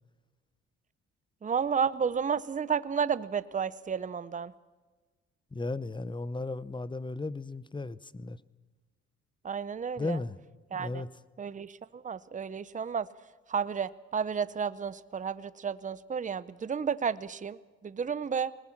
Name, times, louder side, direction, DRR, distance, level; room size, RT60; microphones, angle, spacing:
voice 1, 1.4-4.5 9.4-10.2 10.7-11.0 11.4-13.1 13.5-18.5, right 6 dB, 25° right, 16 dB, 0.8 m, -32 dB
voice 2, 5.5-8.4 10.0-10.4 10.8-11.1, left 2 dB, 15° left, 18 dB, 0.8 m, -35 dB
20.5 x 20.0 x 7.3 m, 1.3 s
cardioid pair, 90°, 30 cm